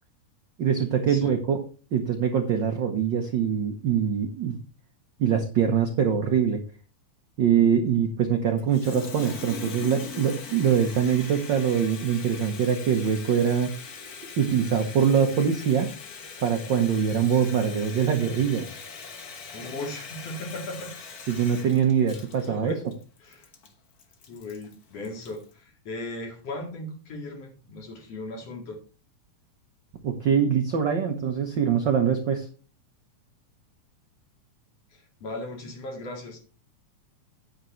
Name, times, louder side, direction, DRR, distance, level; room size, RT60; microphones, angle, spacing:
voice 1, 0.6-1.6 1.9-4.6 5.2-6.6 7.4-13.7 14.4-15.9 16.4-18.7 21.3-22.8 30.0-32.5, right 7 dB, 75° right, 5 dB, 1.0 m, -23 dB
Water tap faucet, 8.6-25.5, left 5 dB, 70° left, 0.8 m, -41 dB
voice 2, 19.5-20.9 22.4-22.8 23.2-23.5 24.3-28.8 34.9-36.4, left 2 dB, 55° left, 2 dB, 3.1 m, -37 dB
9.6 x 8.9 x 3.1 m, 0.36 s
omnidirectional pair, 3.5 m